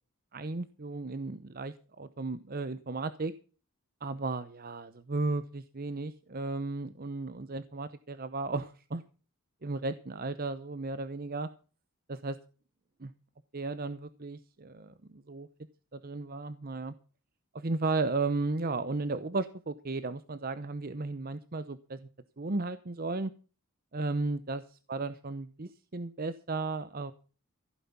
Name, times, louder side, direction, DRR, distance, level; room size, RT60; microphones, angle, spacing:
voice 1, 0.3-3.3 4.0-9.0 9.6-11.5 12.1-12.4 13.0-13.1 13.5-15.5 15.9-16.9 17.5-22.0 22.4-23.3 23.9-27.1, right 3 dB, 40° right, 13 dB, 0.8 m, -34 dB
15.5 x 9.1 x 5.9 m, 0.37 s
head